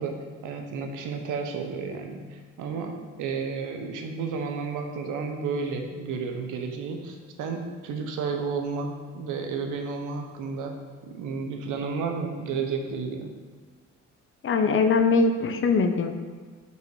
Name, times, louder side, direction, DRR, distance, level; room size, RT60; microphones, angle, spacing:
voice 1, 0.0-10.8 11.1-13.3, right 5 dB, 85° right, 4 dB, 0.8 m, -32 dB
voice 2, 14.4-16.1, left 4 dB, 45° left, 7 dB, 0.6 m, -21 dB
5.5 x 4.7 x 4.6 m, 1.5 s
cardioid pair, 90°, 30 cm